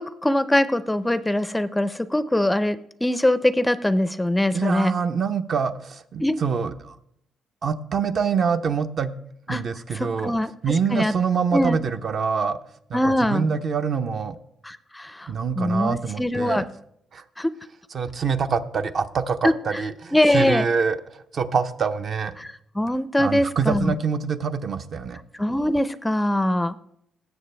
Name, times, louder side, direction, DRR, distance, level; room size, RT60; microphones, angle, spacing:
voice 1, 0.0-4.9 6.2-6.4 9.5-9.6 9.9-10.5 10.9-11.1 11.5-11.8 12.9-13.5 14.6-16.7 17.4-17.5 19.4-19.8 20.1-20.7 22.4-23.9 25.4-26.8, left 1 dB, 10° left, 14 dB, 0.4 m, -22 dB
voice 2, 4.5-7.0 7.6-9.1 9.5-10.3 10.6-12.6 12.9-14.4 15.3-16.7 17.1-17.2 17.9-22.3 23.2-25.2, right 6 dB, 50° right, 9 dB, 0.6 m, -25 dB
17.0 x 6.9 x 3.3 m, 0.73 s
cardioid pair, 90°, 0 cm